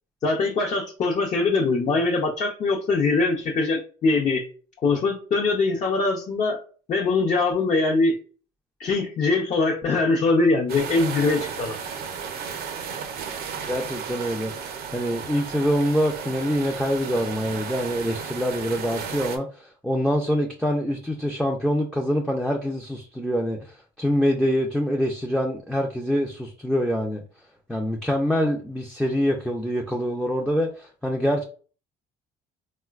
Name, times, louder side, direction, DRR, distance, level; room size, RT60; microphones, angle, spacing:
voice 1, 0.2-4.4 4.8-6.6 6.9-8.2 8.8-11.8, left 3 dB, 45° left, -1 dB, 0.6 m, -22 dB
sound 1, 10.7-19.4, right 6 dB, 65° right, 0.5 m, -34 dB
voice 2, 13.7-27.2 27.7-31.4, equal, ahead, 0 dB, 0.4 m, -25 dB
3.8 x 2.1 x 2.3 m, 0.39 s
cardioid pair, 110°, 17 cm